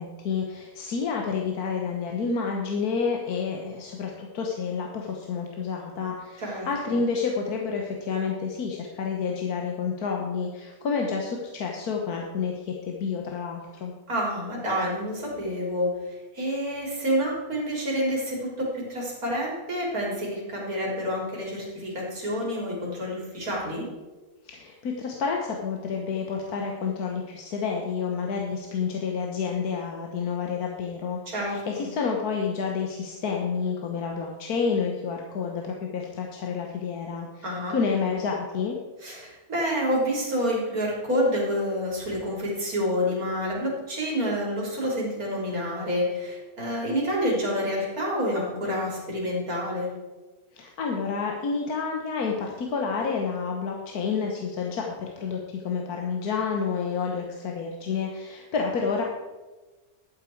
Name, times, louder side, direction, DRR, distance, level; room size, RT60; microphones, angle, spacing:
voice 1, 0.0-13.9 24.4-38.8 50.5-59.0, left 5 dB, 80° left, 0 dB, 1.6 m, -29 dB
voice 2, 6.4-7.0 14.1-15.9 16.3-23.9 31.3-31.9 37.4-37.8 39.0-49.9, equal, 70° right, -4 dB, 4.0 m, -28 dB
12.5 x 9.0 x 4.5 m, 1.2 s
omnidirectional pair, 1.6 m